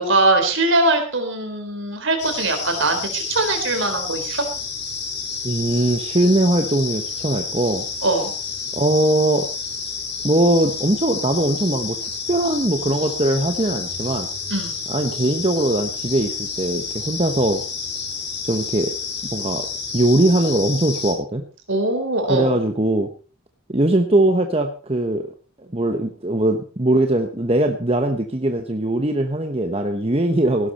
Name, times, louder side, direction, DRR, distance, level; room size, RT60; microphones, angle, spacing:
voice 1, 0.0-4.5 8.0-8.3 14.5-14.8 21.7-22.6, right 2 dB, 55° right, 5 dB, 4.2 m, -21 dB
sound 1, 2.2-21.1, left 5 dB, 50° left, 6.4 m, -30 dB
voice 2, 5.4-7.8 8.7-9.5 10.2-12.0 12.3-14.3 14.9-17.6 18.4-18.9 19.3-19.6 19.9-21.4 22.3-23.1 23.7-25.3 25.7-30.7, right 1 dB, 25° right, 5 dB, 1.1 m, -20 dB
17.0 x 12.0 x 4.3 m, 0.38 s
head